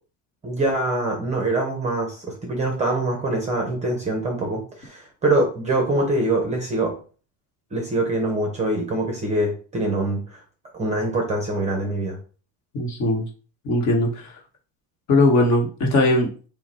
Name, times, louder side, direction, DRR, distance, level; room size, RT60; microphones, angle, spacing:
voice 1, 0.4-7.0 7.7-10.4 10.8-12.2, right 2 dB, 15° right, 2 dB, 0.7 m, -24 dB
voice 2, 12.7-13.2 13.6-14.3 15.1-16.5, left 2 dB, 40° left, 1 dB, 1.3 m, -20 dB
5.5 x 2.2 x 4.2 m, 0.38 s
cardioid pair, 170°, 45 cm